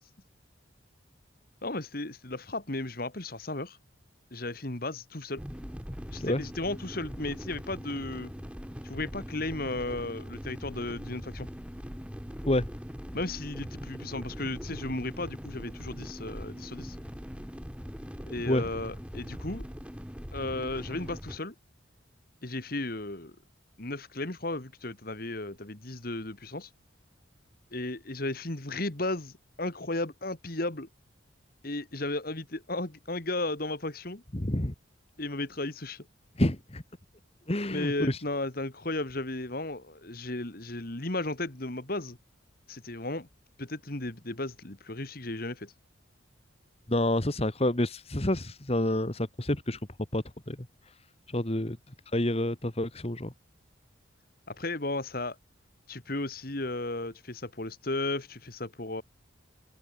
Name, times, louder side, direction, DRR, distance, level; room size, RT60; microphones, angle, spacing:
voice 1, 1.6-3.8 4.3-5.4 6.1-8.3 8.8-11.5 13.1-17.0 18.3-19.7 20.3-21.5 22.4-23.4 23.8-26.7 27.7-30.9 31.6-34.2 35.2-36.1 37.7-42.2 42.7-43.3 43.6-45.7 54.5-55.4 55.9-59.0, left 2 dB, 45° left, 2.0 m, -34 dB
sound 1, 5.4-21.4, equal, 5° right, 3.7 m, -41 dB
voice 2, 34.3-34.7 36.4-36.8 37.5-38.2 46.9-49.8 50.1-50.6 51.3-51.8 52.1-53.3, left 1 dB, 30° left, 1.7 m, -28 dB
open air
head